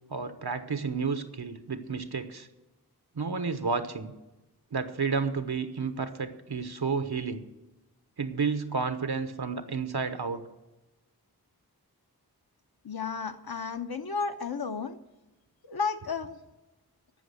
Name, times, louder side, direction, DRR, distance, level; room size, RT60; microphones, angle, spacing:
voice 1, 0.1-2.5 3.2-4.1 4.7-7.4 8.2-10.4, right 5 dB, 85° right, 9 dB, 1.0 m, -31 dB
voice 2, 12.8-15.0 15.6-16.4, left 5 dB, 75° left, 7 dB, 0.9 m, -33 dB
14.0 x 6.1 x 7.9 m, 1.0 s
wide cardioid pair, 50°, 38 cm